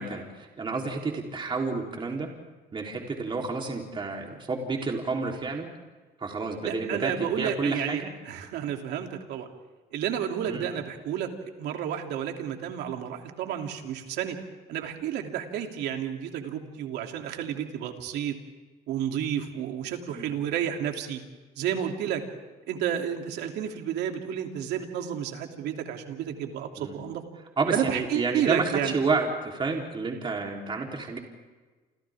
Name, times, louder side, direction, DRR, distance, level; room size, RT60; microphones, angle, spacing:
voice 1, 0.0-2.3 2.7-5.7 6.2-8.1 10.5-10.6 20.1-20.3 26.8-27.0 27.6-31.2, right 4 dB, 30° right, 1 dB, 3.7 m, -30 dB
voice 2, 6.6-9.5 9.9-11.3 11.6-14.4 14.7-18.4 18.9-21.2 21.6-22.2 22.7-27.2 27.7-28.9, right 9 dB, 80° right, 3 dB, 3.1 m, -31 dB
29.0 x 28.5 x 3.7 m, 1.3 s
cardioid pair, 110°, 17 cm